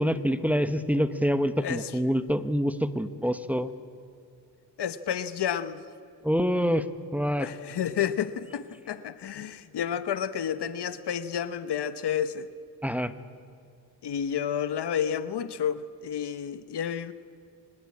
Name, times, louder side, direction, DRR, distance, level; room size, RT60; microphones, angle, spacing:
voice 1, 0.0-3.7 6.2-6.8 7.1-7.5 12.8-13.1, equal, 5° right, 10 dB, 1.1 m, -26 dB
voice 2, 1.6-1.9 4.8-5.8 7.4-12.5 14.0-17.1, left 8 dB, 75° left, 12 dB, 1.0 m, -30 dB
25.0 x 20.0 x 8.6 m, 2.5 s
cardioid pair, 80°, 40 cm